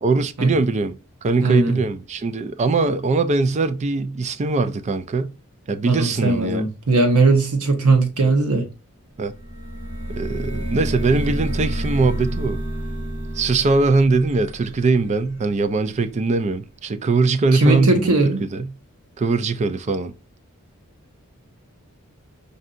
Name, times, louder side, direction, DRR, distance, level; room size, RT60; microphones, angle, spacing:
voice 1, 0.0-5.3 5.7-6.7 9.2-9.3 10.1-12.6 13.3-18.1 18.4-18.7 19.2-20.1, right 3 dB, 30° right, 0.3 m, -21 dB
voice 2, 1.4-1.8 5.8-8.6 17.5-18.4, right 3 dB, 85° right, 1.0 m, -18 dB
sound 1, 9.3-15.9, equal, 65° right, 1.0 m, -29 dB
5.3 x 2.6 x 2.5 m
head